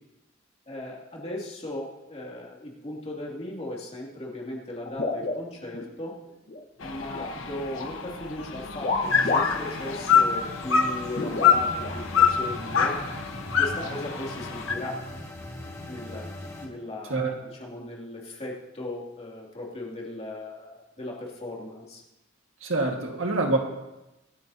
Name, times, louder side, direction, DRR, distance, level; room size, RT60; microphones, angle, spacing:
voice 1, 0.7-6.1 6.8-13.0 13.5-15.0 15.9-16.3 16.6-22.0, left 1 dB, 35° left, -3 dB, 2.7 m, -37 dB
sound 1, 4.9-5.9 6.3-7.4 7.7-8.0 8.8-9.7 10.0-10.1 11.1-12.0 12.8-12.9 13.9-14.1, left 3 dB, 50° left, 1.3 m, -30 dB
sound 2, 6.8-14.7, left 7 dB, 90° left, 1.2 m, -26 dB
sound 3, 9.0-16.7, left 1 dB, 15° left, 1.9 m, -40 dB
voice 2, 22.6-23.6, right 3 dB, 80° right, 2 dB, 1.8 m, -25 dB
25.0 x 9.4 x 2.8 m, 0.98 s
head